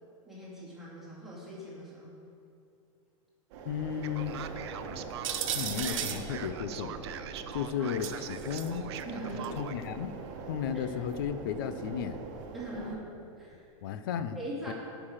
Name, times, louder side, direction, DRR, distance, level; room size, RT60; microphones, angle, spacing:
voice 1, 0.3-2.1 7.8-7.9 9.0-9.6 10.7-10.9 12.5-13.1 13.4-13.6 14.3-14.7, right 1 dB, ahead, -8 dB, 2.3 m, -41 dB
sound 1, 3.5-13.0, right 4 dB, 35° right, 1.4 m, -42 dB
voice 2, 3.7-4.4 5.5-6.9 7.5-8.8 9.6-10.2 10.5-12.2 13.8-14.4 14.7-14.8, left 8 dB, 40° left, 11 dB, 0.5 m, -34 dB
Male speech man speaking, 4.0-9.8, right 10 dB, 50° right, 0.6 m, -43 dB
sound 2, 5.2-6.2 8.0-8.7 9.4-9.5 11.2-11.3, right 9 dB, 70° right, 1.2 m, -34 dB
17.5 x 5.9 x 6.4 m, 2.6 s
supercardioid pair, 180°, 18 cm